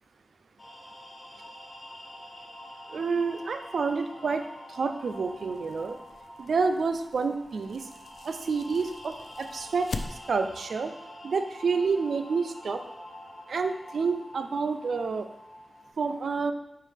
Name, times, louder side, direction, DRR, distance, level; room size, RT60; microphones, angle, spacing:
sound 1, 0.6-15.9, equal, 25° left, 1.7 m, -46 dB
voice 1, 2.9-4.4 4.7-6.0 6.4-7.8 8.2-9.9 10.3-10.9 11.2-12.8 13.5-15.3 16.0-16.5, right 4 dB, 70° right, 8 dB, 0.5 m, -28 dB
sound 2, 5.0-10.6, left 3 dB, 60° left, 0.5 m, -43 dB
9.5 x 4.6 x 3.5 m, 0.83 s
wide cardioid pair, 135°, 0 cm